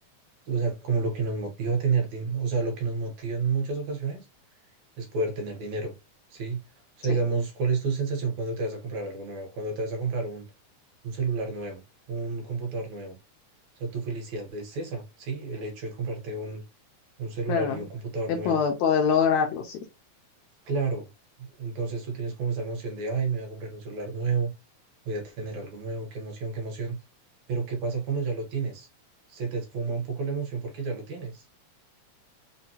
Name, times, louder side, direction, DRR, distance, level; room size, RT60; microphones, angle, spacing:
voice 1, 0.5-4.3 5.0-5.9 6.3-6.6 7.0-10.5 11.0-11.8 12.1-13.2 13.8-16.6 17.2-18.6 20.7-21.1 21.4-24.5 25.1-27.0 27.5-28.9 29.3-31.4, right 4 dB, 70° right, 2.2 m, -30 dB
voice 2, 17.5-17.8 18.3-19.8, left 7 dB, 80° left, 1.7 m, -24 dB
5.2 x 2.1 x 2.8 m
omnidirectional pair, 3.7 m